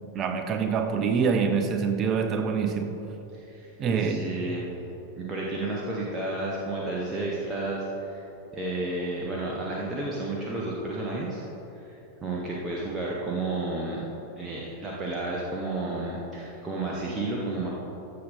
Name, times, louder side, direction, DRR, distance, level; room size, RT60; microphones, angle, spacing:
voice 1, 0.1-2.9 3.8-4.2, right 6 dB, 30° right, 6 dB, 0.8 m, -25 dB
voice 2, 3.3-3.7 4.0-4.7 5.2-8.2 8.5-11.4 11.7-14.0 14.4-17.7, right 2 dB, 15° right, -4 dB, 1.2 m, -32 dB
14.0 x 6.5 x 3.7 m, 3.0 s
figure-of-eight pair, 90°, 0 cm